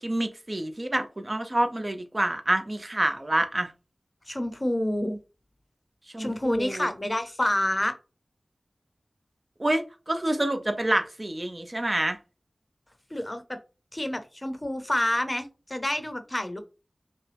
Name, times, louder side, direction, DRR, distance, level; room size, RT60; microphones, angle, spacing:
voice 1, 0.0-3.7 6.1-6.9 9.6-12.2, right 1 dB, 35° right, 7 dB, 0.7 m, -27 dB
voice 2, 4.3-5.2 6.2-7.9 13.1-13.4 13.9-16.6, left 1 dB, 25° left, 8 dB, 0.8 m, -28 dB
5.4 x 2.2 x 3.4 m, 0.31 s
wide cardioid pair, 65°, 0 cm